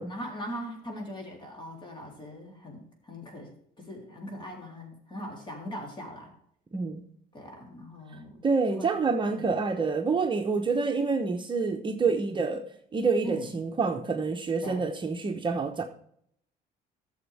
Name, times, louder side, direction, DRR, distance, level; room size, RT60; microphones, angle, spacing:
voice 1, 0.0-3.5 3.8-6.3 7.3-8.4 8.7-9.0 9.3-9.5 13.2-13.5 14.6-14.9, equal, 30° left, 1 dB, 3.7 m, -40 dB
voice 2, 6.7-7.0 8.4-12.6 12.9-15.8, right 4 dB, 30° right, 3 dB, 1.0 m, -27 dB
13.5 x 7.2 x 3.6 m, 0.67 s
cardioid pair, 110°, 17 cm